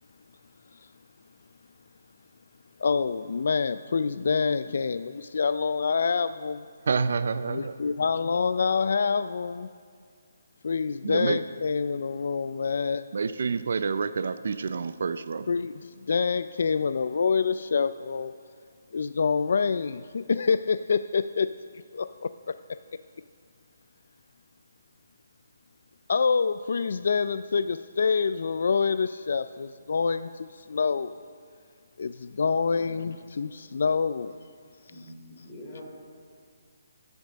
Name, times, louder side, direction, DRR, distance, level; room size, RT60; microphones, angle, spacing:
voice 1, 2.8-6.6 7.5-9.7 10.6-13.1 15.5-18.3 18.9-21.5 21.9-22.6 26.1-31.1 32.0-34.3, left 5 dB, 60° left, 13 dB, 0.3 m, -26 dB
voice 2, 6.9-7.7 11.0-11.4 13.1-15.5, right 5 dB, 60° right, 13 dB, 0.4 m, -28 dB
voice 3, 32.5-33.0 34.9-35.8, left 1 dB, 20° left, -4 dB, 3.0 m, -45 dB
13.5 x 8.1 x 6.4 m, 2.2 s
hypercardioid pair, 170°, 0 cm